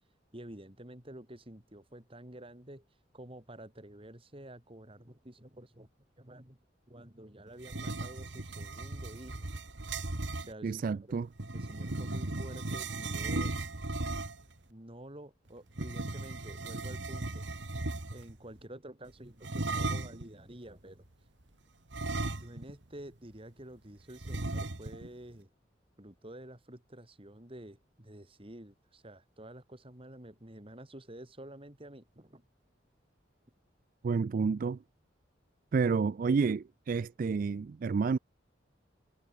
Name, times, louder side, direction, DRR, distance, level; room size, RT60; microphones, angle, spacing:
voice 1, 0.3-2.9 3.1-5.9 6.2-6.6 6.9-9.5 10.4-11.2 11.5-13.5 14.7-17.5 18.1-21.1 22.4-25.5 26.0-32.4, right 1 dB, 30° right, 3.5 m, -49 dB
sound 1, 7.6-10.5 11.4-14.5 15.7-18.3 19.4-20.3 21.9-22.8 23.1-23.2 24.2-25.1, right 2 dB, 75° right, 2.0 m, -36 dB
voice 2, 10.6-11.3 34.0-34.8 35.7-38.2, right 5 dB, 50° right, 0.3 m, -29 dB
head